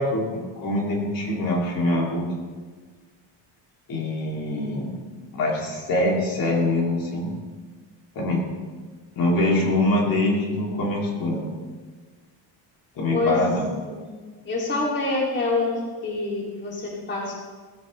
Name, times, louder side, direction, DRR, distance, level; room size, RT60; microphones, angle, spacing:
voice 1, 0.0-2.2 3.9-5.0 5.3-7.3 8.1-8.5 9.2-11.5 12.9-13.7, left 1 dB, 50° left, -2 dB, 2.7 m, -24 dB
voice 2, 13.1-13.4 13.9-14.1 14.4-17.3, left 3 dB, 25° left, -3 dB, 2.6 m, -26 dB
16.5 x 15.0 x 3.2 m, 1.5 s
cardioid pair, 175°, 43 cm